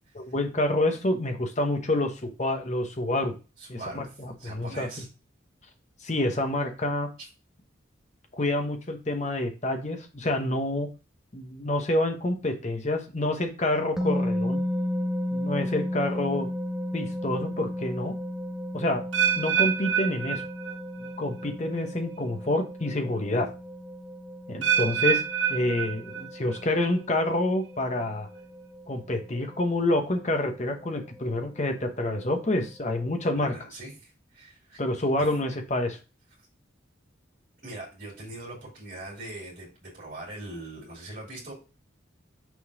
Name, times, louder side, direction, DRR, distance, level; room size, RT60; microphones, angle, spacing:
voice 1, 0.1-3.3 3.7-4.9 6.0-7.1 8.3-10.9 11.3-14.6 15.3-16.5 16.9-18.1 18.7-19.0 19.4-20.4 21.0-23.5 24.5-25.2 25.5-28.3 28.9-33.6 34.8-36.0, left 1 dB, 35° left, 5 dB, 1.0 m, -28 dB
voice 2, 3.6-5.1 7.2-7.3 33.3-34.8 35.2-35.4 37.6-41.5, right 2 dB, 40° right, -4 dB, 2.8 m, -42 dB
sound 1, 14.0-33.3, left 1 dB, ahead, 0.7 m, -35 dB
sound 2, 19.1-21.1 21.4-21.8 22.5-22.6 24.6-26.6 26.9-27.3 28.0-28.1, right 8 dB, 70° right, 2.0 m, -27 dB
6.2 x 3.9 x 4.8 m, 0.31 s
head